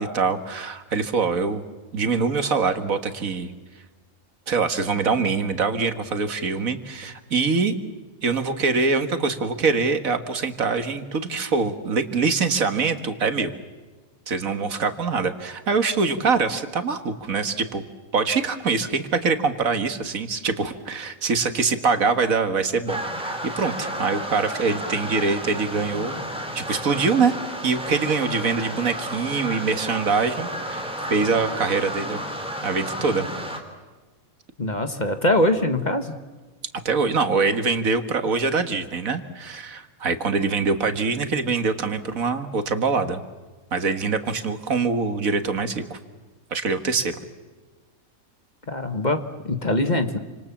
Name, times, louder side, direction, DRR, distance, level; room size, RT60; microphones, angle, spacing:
voice 1, 0.0-1.6 1.9-3.5 4.5-7.8 8.2-13.5 14.3-17.8 18.1-26.1 26.5-27.4 27.6-32.2 32.6-33.3 36.9-43.2 43.7-46.0 46.5-47.1, right 4 dB, 75° right, 8 dB, 2.0 m, -24 dB
sound 1, 22.9-33.6, equal, 5° right, 3.2 m, -32 dB
voice 2, 34.6-36.2 48.7-50.2, left 1 dB, 30° left, 8 dB, 1.5 m, -23 dB
28.5 x 26.5 x 7.3 m, 1.3 s
omnidirectional pair, 1.5 m